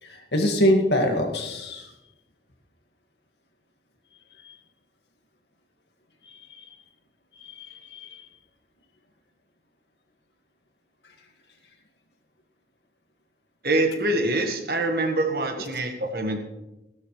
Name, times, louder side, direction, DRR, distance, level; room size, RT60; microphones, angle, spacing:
voice 1, 0.0-1.9 4.4-4.6 6.2-6.7 7.3-8.3, equal, 75° left, 3 dB, 2.1 m, -25 dB
voice 2, 13.6-16.4, right 2 dB, 55° right, 4 dB, 1.6 m, -25 dB
15.5 x 12.5 x 3.3 m, 0.99 s
head